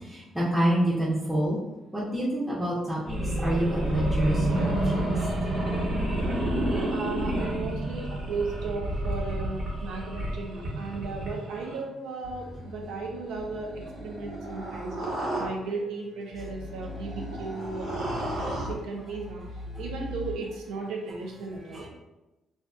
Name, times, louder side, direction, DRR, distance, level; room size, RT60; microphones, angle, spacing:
voice 1, 0.0-1.6 1.9-5.1 15.0-15.6 21.7-21.9, right 1 dB, 10° right, -8 dB, 0.6 m, -28 dB
sound 1, 3.1-11.8 12.2-15.5 16.3-18.7 19.1-20.3, right 1 dB, 60° right, 1.0 m, -30 dB
voice 2, 6.9-15.0 15.4-18.3 18.7-21.9, right 3 dB, 90° right, 0 dB, 0.5 m, -35 dB
2.5 x 2.5 x 2.3 m, 1.0 s
cardioid pair, 90°, 0 cm